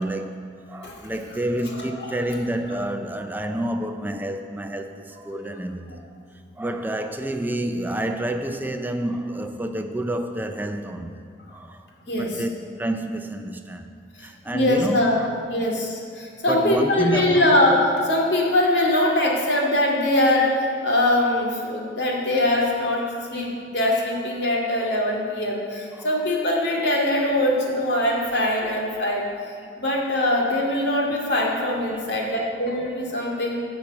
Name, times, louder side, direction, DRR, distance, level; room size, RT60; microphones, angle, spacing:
voice 1, 0.0-6.1 6.6-11.2 11.5-13.9 14.2-15.3 16.5-17.6 18.5-18.7 25.9-26.3 31.5-32.4 33.1-33.4, right 1 dB, 10° right, 6 dB, 0.4 m, -29 dB
voice 2, 1.7-2.2 5.3-5.4 12.1-12.4 14.2-15.2 15.5-17.8 18.0-33.6, left 1 dB, 75° left, -2 dB, 2.3 m, -22 dB
13.5 x 5.2 x 7.8 m, 2.2 s
head